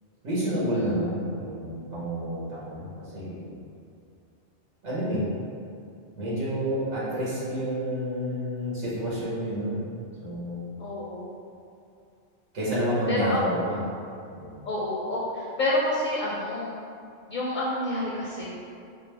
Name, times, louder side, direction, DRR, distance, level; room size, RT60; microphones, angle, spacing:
voice 1, 0.2-3.5 4.8-5.2 6.2-9.9 10.2-10.7 12.5-13.8 14.3-14.5, equal, 90° right, -8 dB, 1.4 m, -29 dB
voice 2, 10.8-11.3 13.1-13.7 14.7-16.8 17.3-18.7, left 1 dB, 55° left, -5 dB, 0.5 m, -28 dB
5.4 x 2.0 x 3.2 m, 2.5 s
omnidirectional pair, 1.2 m